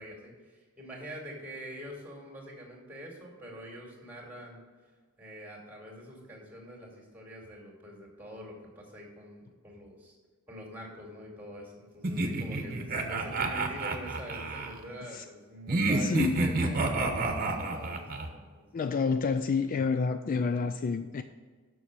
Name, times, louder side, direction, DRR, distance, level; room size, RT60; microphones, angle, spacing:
voice 1, 0.0-4.6 5.2-10.1 10.5-17.1 17.5-18.8 20.3-20.4, equal, 10° right, 2.4 m, -45 dB
sound 1, 12.0-14.7 15.7-18.3, right 2 dB, 40° right, 1.0 m, -29 dB
voice 2, 16.0-16.8 18.7-21.2, left 5 dB, 40° left, 0.3 m, -29 dB
6.9 x 6.2 x 7.6 m
head